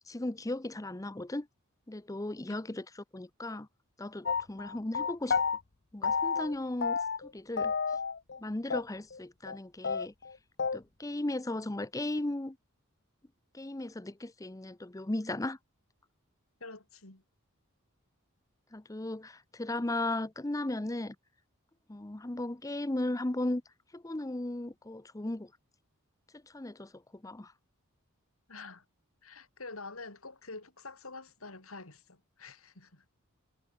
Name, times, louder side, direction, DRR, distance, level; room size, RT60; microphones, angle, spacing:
voice 1, 0.1-1.5 1.9-2.9 3.1-3.7 4.0-5.4 5.9-7.0 7.3-7.7 8.4-10.1 10.7-12.6 13.5-15.6 18.7-21.2 21.9-23.6 23.9-25.5 26.5-27.5, left 1 dB, 15° left, 0.6 m, -36 dB
sound 1, 4.3-5.6 6.0-6.5 6.8-7.3 7.6-8.4 8.7-8.8 9.1-9.2 9.5-9.6 9.8-10.8, left 5 dB, 50° left, 0.8 m, -31 dB
voice 2, 16.6-17.2 28.5-28.8 29.2-33.1, left 3 dB, 75° left, 4.3 m, -47 dB
head